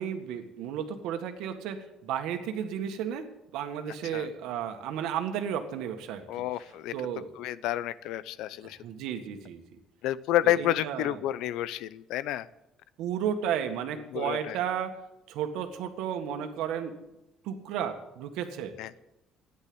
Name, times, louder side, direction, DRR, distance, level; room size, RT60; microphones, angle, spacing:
voice 1, 0.0-3.2 3.5-6.3 6.9-7.3 8.6-9.8 10.4-11.2 13.0-15.0 15.3-17.0 17.4-18.7, right 9 dB, 90° right, 6 dB, 1.8 m, -33 dB
voice 2, 6.3-7.0 7.4-8.8 10.0-12.5 14.1-14.6 18.8-18.9, left 13 dB, 85° left, 17 dB, 0.6 m, -30 dB
14.0 x 10.5 x 7.9 m, 0.90 s
cardioid pair, 170°, 0 cm